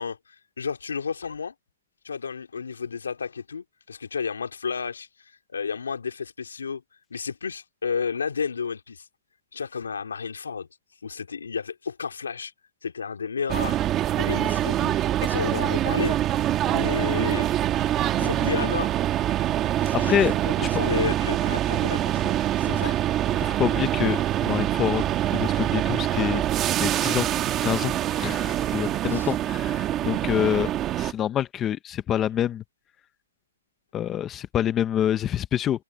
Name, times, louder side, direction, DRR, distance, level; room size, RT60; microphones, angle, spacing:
voice 1, 0.0-1.5 2.0-6.8 7.1-9.1 9.5-10.7 11.0-12.5 12.8-15.0 15.2-16.2 16.7-17.5 18.2-18.9 19.8-23.0 29.1-29.3, left 6 dB, 90° left, 2.5 m, -32 dB
sound 1, 13.5-31.1, right 12 dB, 15° right, 1.2 m, -25 dB
voice 2, 18.2-18.7 20.0-20.3 20.6-20.8 22.8-22.9 23.4-26.4 26.8-27.3 27.6-30.7 31.0-32.6 33.9-35.8, left 10 dB, 10° left, 0.6 m, -27 dB
hypercardioid pair, 170°, 0 cm